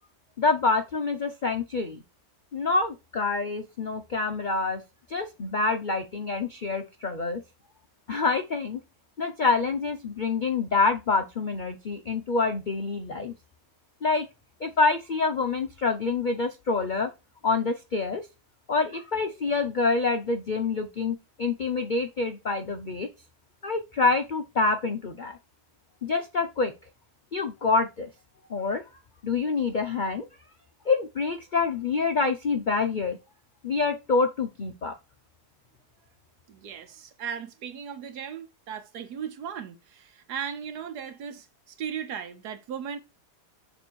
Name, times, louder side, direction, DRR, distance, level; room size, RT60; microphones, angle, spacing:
voice 1, 0.4-2.0 2.5-4.8 5.1-7.4 8.1-8.8 9.2-13.3 14.0-14.3 14.6-17.1 17.4-18.2 18.7-23.1 23.6-25.4 26.0-26.7 27.3-28.1 28.5-28.8 29.2-30.2 30.9-33.2 33.6-34.9, left 4 dB, 65° left, 0.4 m, -26 dB
voice 2, 36.5-43.0, right 8 dB, 80° right, 1.3 m, -37 dB
6.9 x 3.3 x 6.1 m
omnidirectional pair, 1.7 m